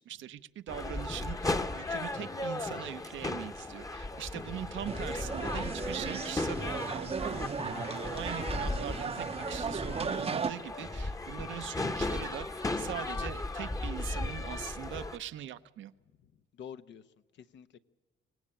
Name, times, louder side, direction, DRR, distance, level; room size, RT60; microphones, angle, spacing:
voice 1, 0.0-15.9, right 11 dB, 75° right, 0.8 m, -42 dB
sound 1, 0.7-15.2, left 2 dB, 15° left, 1.0 m, -36 dB
sound 2, 4.9-10.5, right 5 dB, 30° right, 0.7 m, -36 dB
voice 2, 8.3-9.1 11.0-11.6 13.6-13.9 16.2-17.8, left 8 dB, 65° left, 0.8 m, -51 dB
24.5 x 18.0 x 8.9 m
cardioid pair, 90°, 20 cm